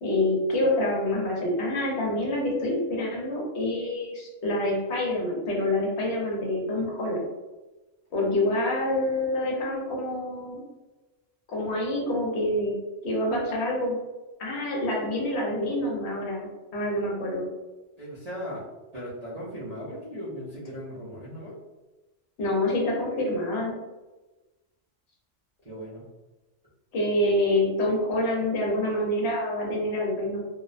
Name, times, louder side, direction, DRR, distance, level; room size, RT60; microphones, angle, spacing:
voice 1, 0.0-7.3 8.1-10.6 11.5-12.7 13.0-14.0 14.4-17.5 22.4-23.8 26.9-30.4, left 1 dB, 65° left, -3 dB, 0.9 m, -27 dB
voice 2, 18.0-18.7 18.9-21.6 25.6-26.0, equal, 45° right, -9 dB, 0.5 m, -37 dB
2.5 x 2.0 x 2.4 m, 1.1 s
omnidirectional pair, 1.3 m